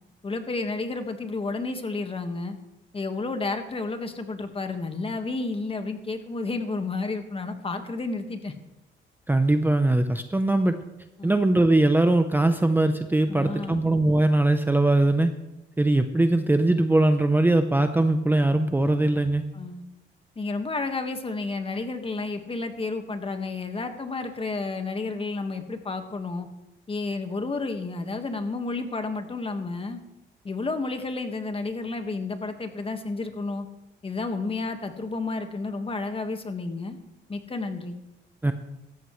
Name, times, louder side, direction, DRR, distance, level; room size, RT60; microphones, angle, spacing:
voice 1, 0.2-2.6 2.9-8.5 11.2-11.4 13.3-13.8 19.5-19.8 20.3-26.5 26.9-30.0 30.4-33.7 34.0-37.0 37.3-38.0, left 3 dB, 30° left, 7 dB, 1.7 m, -31 dB
voice 2, 9.3-10.8 11.2-15.3 15.8-19.4 38.4-38.5, right 2 dB, 10° right, 8 dB, 0.7 m, -21 dB
17.0 x 14.0 x 3.2 m, 0.98 s
cardioid pair, 90°, 20 cm